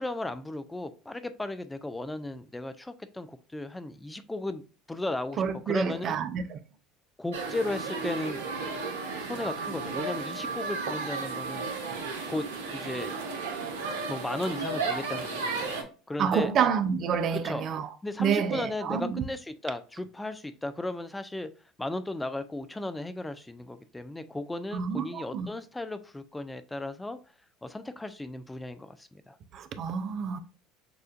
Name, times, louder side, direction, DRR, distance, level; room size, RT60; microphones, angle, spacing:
voice 1, 0.0-4.6 4.9-6.2 7.2-8.4 9.2-11.6 12.3-13.2 14.0-16.5 17.4-17.7 18.0-21.5 21.8-27.2 27.6-29.4, left 2 dB, 10° left, 0.4 m, -35 dB
voice 2, 5.4-6.6 16.2-17.9 18.2-19.2 24.7-25.5 29.5-30.4, right 7 dB, 50° right, 0.5 m, -28 dB
sound 1, 7.3-15.8, right 4 dB, 85° right, 0.8 m, -34 dB
6.8 x 2.5 x 2.4 m
hypercardioid pair, 70°, 0 cm